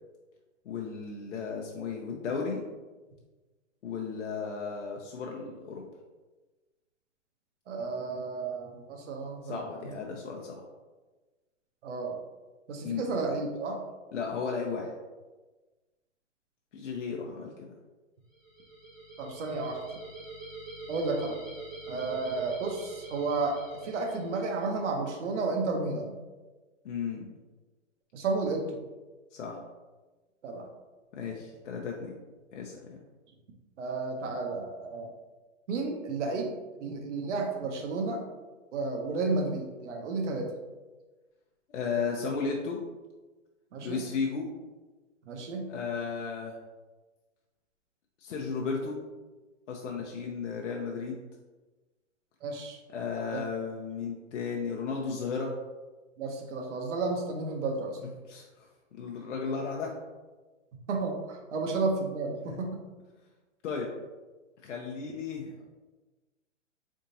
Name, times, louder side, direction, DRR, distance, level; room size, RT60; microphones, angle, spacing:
voice 1, 0.7-2.6 3.8-5.8 9.4-10.6 12.8-13.1 14.1-14.9 16.7-17.6 26.8-27.3 29.3-29.6 31.1-32.1 32.5-33.0 41.7-42.8 43.8-44.5 45.7-46.6 48.2-49.0 49.7-51.2 52.9-55.5 58.3-58.7 58.9-59.9 62.5-62.6 63.6-63.9 64.6-65.5, left 5 dB, 70° left, -1 dB, 0.7 m, -34 dB
voice 2, 7.7-10.0 11.8-12.2 12.7-13.8 19.2-19.8 20.9-21.4 21.9-26.1 28.1-28.8 30.4-30.7 33.8-35.1 35.7-36.5 36.8-38.2 38.7-40.5 43.7-44.0 45.3-45.7 52.4-52.8 53.3-53.4 56.2-58.0 60.9-62.9, right 3 dB, 65° right, 2 dB, 0.9 m, -32 dB
guitar tremolo fade in-out, 18.3-24.7, right 2 dB, 5° left, 0.6 m, -45 dB
4.0 x 3.6 x 2.7 m, 1.2 s
hypercardioid pair, 145°, 37 cm